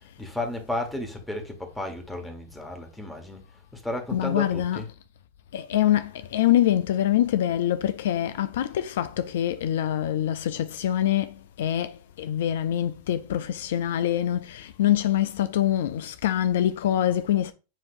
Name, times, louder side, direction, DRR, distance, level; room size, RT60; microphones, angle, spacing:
voice 1, 0.2-3.4 3.7-4.9, left 1 dB, 5° left, 1.3 m, -33 dB
voice 2, 4.1-4.8 5.5-11.9 12.2-17.5, left 11 dB, 70° left, 0.3 m, -25 dB
7.4 x 2.8 x 2.5 m
hypercardioid pair, 95°, 0 cm